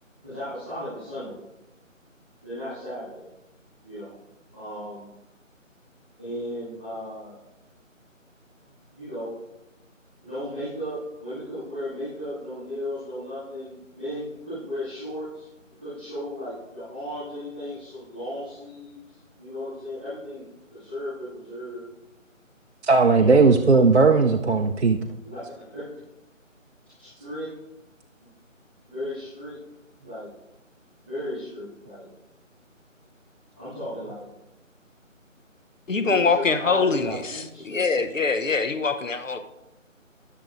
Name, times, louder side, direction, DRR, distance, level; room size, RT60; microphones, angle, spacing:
voice 1, 0.2-1.4 2.4-3.3 3.8-4.1 4.5-5.1 6.2-7.3 8.9-9.3 10.2-15.5 15.8-20.4 20.7-21.9 23.1-23.9 25.2-25.8 27.0-27.5 28.8-29.6 30.0-30.3 31.0-32.1 33.5-34.3 36.0-37.8, equal, 10° left, 1.6 m, -35 dB
voice 2, 22.8-25.0, right 4 dB, 60° right, 0.6 m, -17 dB
voice 3, 35.9-39.4, left 4 dB, 70° left, 1.0 m, -24 dB
20.0 x 6.8 x 2.6 m
figure-of-eight pair, 175°, 40 cm